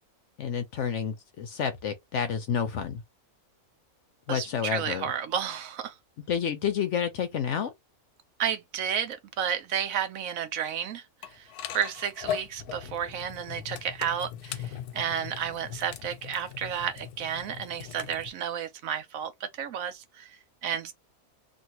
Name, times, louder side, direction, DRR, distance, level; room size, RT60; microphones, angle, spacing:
voice 1, 0.4-3.0 4.3-5.1 6.3-7.7, left 7 dB, 65° left, 0.8 m, -29 dB
voice 2, 4.3-5.9 8.4-20.9, right 8 dB, 70° right, 0.9 m, -32 dB
sound 1, 11.2-18.3, left 10 dB, 90° left, 1.2 m, -39 dB
3.1 x 2.6 x 2.7 m
omnidirectional pair, 1.6 m